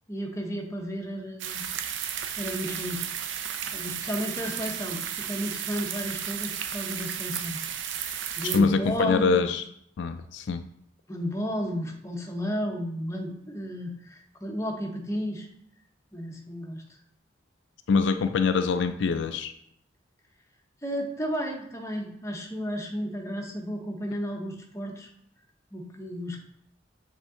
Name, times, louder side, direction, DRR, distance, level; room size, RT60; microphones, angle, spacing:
voice 1, 0.1-1.6 2.4-3.4 3.7-7.6 7.9-9.5 11.1-15.5 16.1-16.8 20.8-25.1 25.7-26.4, equal, 15° left, 1 dB, 0.8 m, -33 dB
sound 1, 1.4-8.6, right 9 dB, 75° right, 0.5 m, -33 dB
voice 2, 8.4-9.6 10.0-10.6 17.9-19.5, left 5 dB, 70° left, 9 dB, 0.3 m, -24 dB
7.2 x 3.7 x 3.7 m, 0.72 s
head